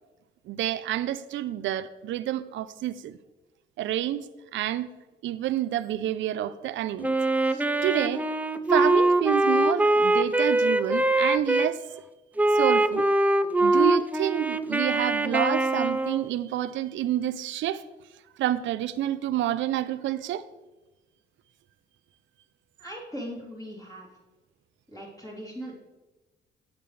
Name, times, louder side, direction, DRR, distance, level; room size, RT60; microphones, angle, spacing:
voice 1, 0.5-3.2 3.8-4.3 4.5-4.9 5.2-8.2 8.7-11.8 12.5-13.1 13.6-17.8 18.4-20.4, right 12 dB, 75° right, 13 dB, 0.5 m, -28 dB
Wind instrument woodwind instrument, 7.0-11.7 12.4-16.3, right 2 dB, 10° right, 0.4 m, -23 dB
voice 2, 22.8-24.1 24.9-25.7, equal, 15° left, -4 dB, 3.2 m, -39 dB
8.8 x 8.1 x 3.3 m, 1.1 s
cardioid pair, 90°, 20 cm